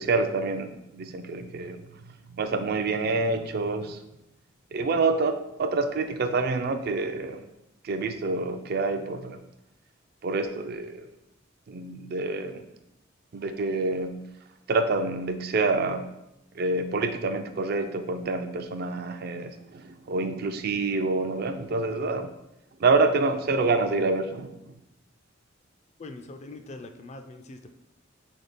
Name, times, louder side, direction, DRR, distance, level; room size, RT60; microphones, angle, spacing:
voice 1, 0.0-4.0 4.7-7.4 7.8-9.4 10.2-11.1 11.7-12.7 13.3-14.3 14.7-16.1 16.6-22.3 22.8-24.5, right 3 dB, 50° right, 8 dB, 0.4 m, -27 dB
voice 2, 26.0-27.7, left 2 dB, 35° left, 7 dB, 0.4 m, -42 dB
3.6 x 3.5 x 4.1 m, 0.88 s
head